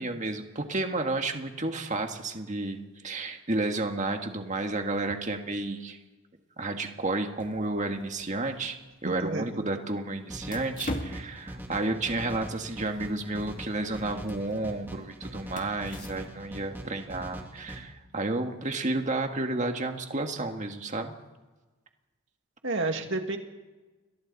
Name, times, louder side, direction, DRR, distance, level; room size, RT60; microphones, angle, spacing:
voice 1, 0.0-6.0 6.6-8.8 9.0-21.1, right 2 dB, 35° right, 5 dB, 1.7 m, -31 dB
sound 1, 7.4-16.6, left 1 dB, 35° left, 1.9 m, -43 dB
voice 2, 9.0-9.5 22.6-23.4, right 2 dB, 55° right, 4 dB, 2.2 m, -30 dB
sound 2, 10.3-17.8, equal, 10° right, 2.2 m, -42 dB
30.0 x 22.0 x 4.2 m, 1.2 s
head